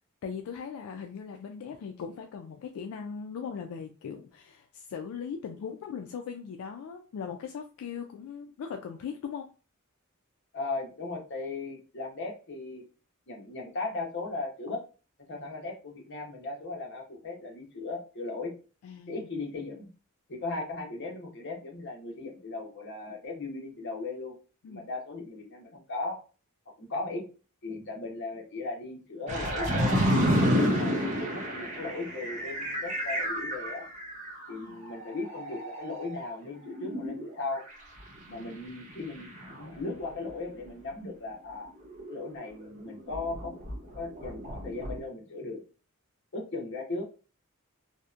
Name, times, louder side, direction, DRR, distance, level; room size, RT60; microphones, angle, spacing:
voice 1, 0.2-9.5 18.8-19.3 20.5-20.6 24.6-24.9 30.6-31.0 34.5-34.8 38.3-38.6, left 6 dB, 80° left, 4 dB, 0.3 m, -39 dB
voice 2, 10.5-12.8 13.3-14.8 15.3-18.5 19.1-19.9 20.3-24.3 24.7-26.2 26.8-27.3 27.6-29.9 30.4-33.8 34.5-37.6 38.3-41.7 42.1-43.5 43.9-45.6 46.3-47.1, left 3 dB, 55° left, 0 dB, 0.8 m, -37 dB
sound 1, 29.3-34.5 34.8-36.2 36.5-37.7 38.8-40.6 41.8-45.0, equal, 35° right, 0.6 m, -30 dB
2.7 x 2.1 x 2.3 m, 0.35 s
head